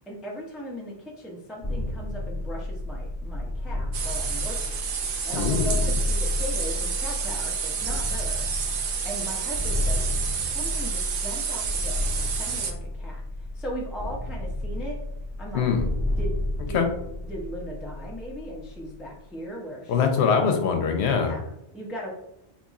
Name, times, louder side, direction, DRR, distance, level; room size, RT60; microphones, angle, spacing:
voice 1, 0.1-4.8 5.2-8.5 9.0-10.0 10.5-15.0 15.4-15.7 16.2-16.4 16.7-16.9 17.2-20.1 21.1-22.1, equal, ahead, -3 dB, 0.4 m, -38 dB
sound 1, 1.6-19.3, left 1 dB, 20° left, 1.0 m, -31 dB
sound 2, 3.9-12.7, right 6 dB, 60° right, 0.6 m, -30 dB
voice 2, 5.3-5.9 15.5-15.9 16.7-16.9 19.9-21.3, left 6 dB, 80° left, 5 dB, 0.9 m, -23 dB
4.0 x 2.8 x 2.4 m, 0.87 s
omnidirectional pair, 1.1 m